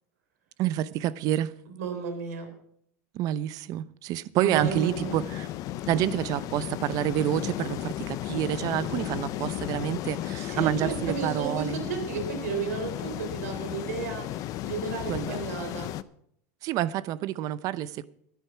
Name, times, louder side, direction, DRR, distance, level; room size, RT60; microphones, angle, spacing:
voice 1, 0.6-1.5 3.1-5.5 5.9-11.8 15.1-15.4 16.6-18.0, right 12 dB, 50° right, 0.7 m, -28 dB
voice 2, 1.8-2.5 4.4-5.1 10.4-15.9, right 5 dB, 85° right, 3.8 m, -33 dB
sound 1, 4.5-16.0, left 13 dB, 45° left, 0.6 m, -34 dB
12.0 x 10.5 x 5.9 m
supercardioid pair, 120°, 8 cm